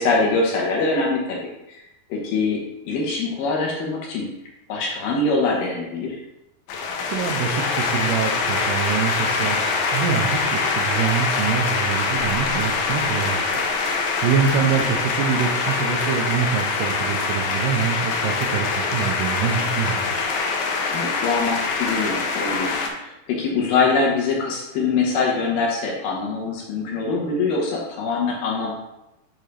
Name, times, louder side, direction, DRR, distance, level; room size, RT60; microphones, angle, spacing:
voice 1, 0.0-1.4 1.7-1.8 2.1-4.3 4.7-6.2 14.6-14.8 20.9-28.7, left 3 dB, 70° left, -2 dB, 2.5 m, -23 dB
sound 1, 6.7-22.9, left 4 dB, 90° left, 2.8 m, -24 dB
voice 2, 7.0-9.6 9.9-20.3, right 7 dB, 90° right, -1 dB, 1.9 m, -25 dB
7.9 x 3.7 x 3.3 m, 0.89 s
omnidirectional pair, 4.4 m